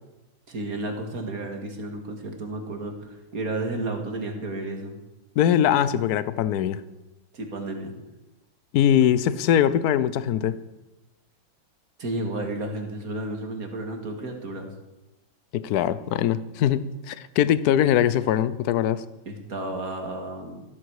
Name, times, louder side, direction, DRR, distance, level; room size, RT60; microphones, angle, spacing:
voice 1, 0.5-5.0 7.3-7.9 12.0-14.7 19.3-20.6, right 2 dB, 45° right, 3 dB, 2.4 m, -32 dB
voice 2, 5.4-6.8 8.7-10.6 15.5-19.0, left 10 dB, 65° left, 15 dB, 1.0 m, -22 dB
15.0 x 13.5 x 4.8 m, 1.0 s
omnidirectional pair, 2.2 m